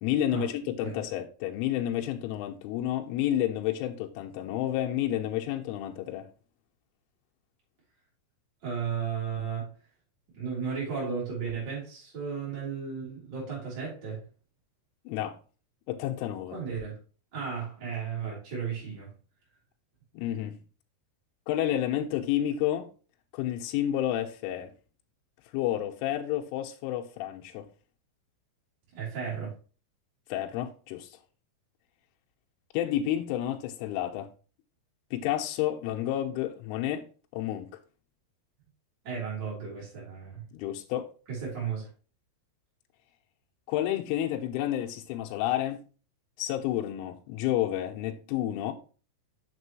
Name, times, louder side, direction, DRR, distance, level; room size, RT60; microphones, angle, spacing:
voice 1, 0.0-6.3 15.1-15.3 15.9-16.5 20.1-20.6 21.5-22.9 23.3-24.7 25.5-27.7 30.3-31.1 32.7-34.3 35.1-37.0 37.3-37.7 40.5-41.1 43.7-45.8 46.4-48.7, left 12 dB, 85° left, 3.3 m, -30 dB
voice 2, 8.6-9.7 10.4-14.2 16.5-17.0 17.3-19.1 28.9-29.5 39.0-40.4 41.3-41.9, right 6 dB, 25° right, 3.7 m, -34 dB
7.4 x 6.2 x 3.1 m
omnidirectional pair, 5.9 m